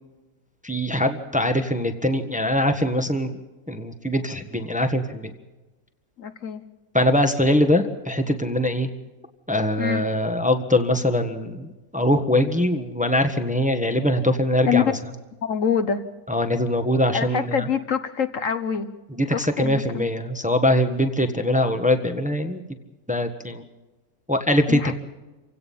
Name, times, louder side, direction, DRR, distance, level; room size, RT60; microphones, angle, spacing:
voice 1, 0.6-3.4 3.7-5.3 6.9-8.9 9.5-14.9 16.3-17.6 19.2-22.6 23.1-23.6 24.3-24.8, left 1 dB, 5° right, 6 dB, 1.4 m, -22 dB
voice 2, 6.2-6.6 7.5-7.6 9.8-10.0 14.7-14.8 15.4-16.0 17.1-18.9 19.3-20.0 24.7-24.9, left 7 dB, 60° left, 10 dB, 1.4 m, -25 dB
29.0 x 17.0 x 5.7 m, 1.1 s
omnidirectional pair, 1.6 m